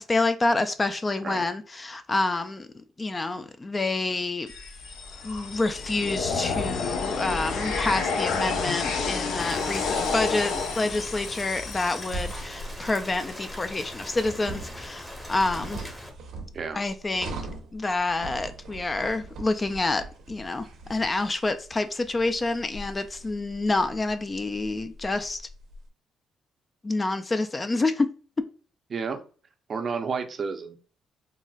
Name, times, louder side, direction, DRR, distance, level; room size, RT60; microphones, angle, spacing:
voice 1, 0.0-2.7 3.0-4.5 5.2-15.9 16.7-17.4 17.7-25.4 26.8-28.1 28.4-28.5, left 2 dB, 25° left, 0.3 m, -28 dB
sound 1, 4.5-12.4, left 4 dB, 75° left, 0.5 m, -30 dB
Rain, 9.4-16.1, equal, 10° left, 0.8 m, -41 dB
sound 2, 12.1-25.8, right 2 dB, 80° right, 0.9 m, -41 dB
voice 2, 28.9-29.2 29.7-30.8, right 5 dB, 45° right, 0.5 m, -31 dB
3.9 x 2.0 x 2.3 m
cardioid pair, 90°, 0 cm